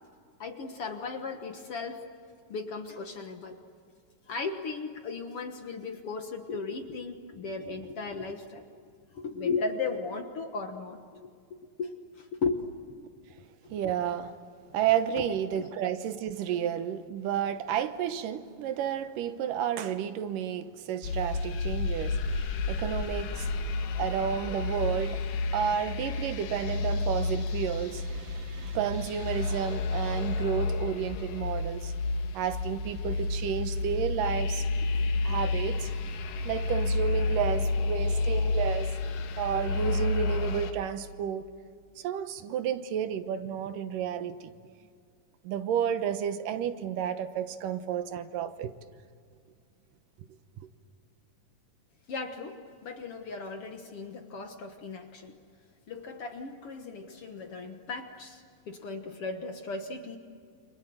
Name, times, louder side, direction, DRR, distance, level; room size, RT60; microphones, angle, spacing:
voice 1, 0.4-2.1 2.5-3.6 4.3-8.7 9.1-11.3 11.8-11.9 12.2-13.0 15.2-15.7 52.1-55.4 55.9-60.2, left 4 dB, 55° left, 5 dB, 1.9 m, -36 dB
voice 2, 13.7-14.3 14.7-23.5 24.0-25.2 25.5-31.9 32.3-34.7 35.2-35.9 36.5-39.0 39.4-41.4 42.0-44.5 45.4-48.7, right 9 dB, 80° right, 10 dB, 2.6 m, -31 dB
sound 1, 21.0-40.7, left 3 dB, 85° left, 3.2 m, -30 dB
29.0 x 26.5 x 7.8 m, 2.2 s
omnidirectional pair, 3.9 m